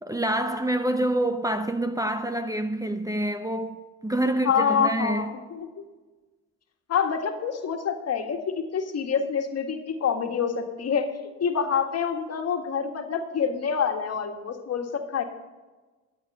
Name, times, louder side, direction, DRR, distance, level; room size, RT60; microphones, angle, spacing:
voice 1, 0.0-5.3, right 1 dB, 10° right, 0.8 m, -27 dB
voice 2, 4.4-5.7 6.9-11.1 11.4-15.2, left 6 dB, 55° left, 1.8 m, -26 dB
13.0 x 8.7 x 5.5 m
cardioid pair, 90°, 30 cm